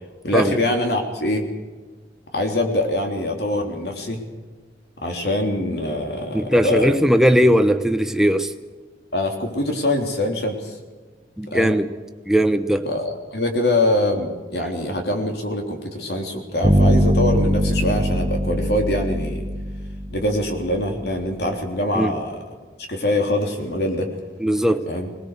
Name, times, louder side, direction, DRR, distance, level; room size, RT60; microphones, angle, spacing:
voice 1, 0.2-1.5 2.3-4.2 5.0-6.9 9.1-10.8 11.5-11.8 12.9-19.5 20.1-22.4 22.9-24.1 24.9-25.1, left 1 dB, 65° left, 3.6 m, -23 dB
voice 2, 6.3-8.5 11.4-11.9 12.3-12.9 21.9-22.1 24.4-24.8, equal, 5° right, 1.0 m, -18 dB
sound 1, 16.6-20.6, equal, 20° right, 2.8 m, -21 dB
22.0 x 19.5 x 6.8 m
head